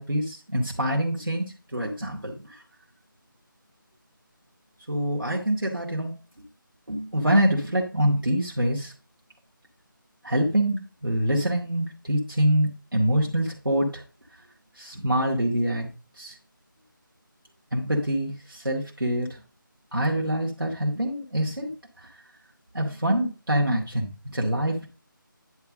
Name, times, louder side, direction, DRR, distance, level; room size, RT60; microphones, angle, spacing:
voice 1, 0.0-2.6 4.9-6.2 6.9-8.9 10.2-14.0 14.8-15.9 16.2-16.4 17.7-19.4 19.9-21.7 22.0-22.1 22.7-24.9, right 1 dB, 75° right, -1 dB, 2.3 m, -25 dB
10.5 x 3.6 x 6.3 m, 0.34 s
figure-of-eight pair, 160°, 11 cm